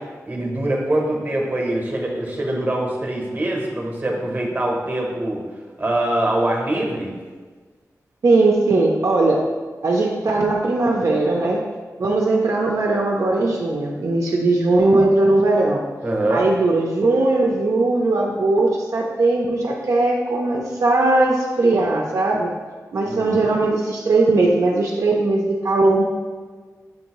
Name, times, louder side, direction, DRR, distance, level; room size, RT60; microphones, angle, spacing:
voice 1, 0.0-5.4 5.8-7.2 16.0-16.5 23.0-23.5, right 1 dB, 30° right, 0 dB, 0.8 m, -23 dB
voice 2, 8.2-9.4 9.8-11.6 12.0-15.8 16.3-22.5 22.9-26.0, right 2 dB, 60° right, -1 dB, 0.4 m, -19 dB
6.3 x 2.6 x 2.9 m, 1.5 s
wide cardioid pair, 105°, 6 cm